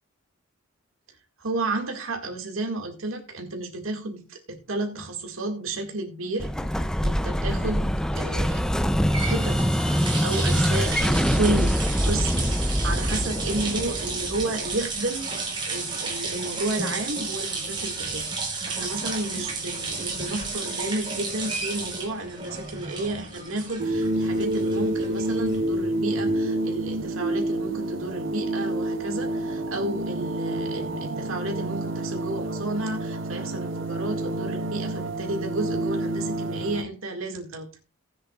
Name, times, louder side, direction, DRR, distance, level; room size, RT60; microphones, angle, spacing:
voice 1, 1.4-6.5 7.0-8.6 9.2-9.6 10.2-15.3 15.7-37.8, right 2 dB, 85° right, 3 dB, 2.0 m, -32 dB
Explosion, 6.4-15.1, equal, 5° left, 0.4 m, -24 dB
sound 1, 8.9-25.8, right 3 dB, 25° right, 3.0 m, -33 dB
sound 2, 23.8-36.8, right 1 dB, 65° right, 0.9 m, -28 dB
19.0 x 7.5 x 2.4 m, 0.33 s
head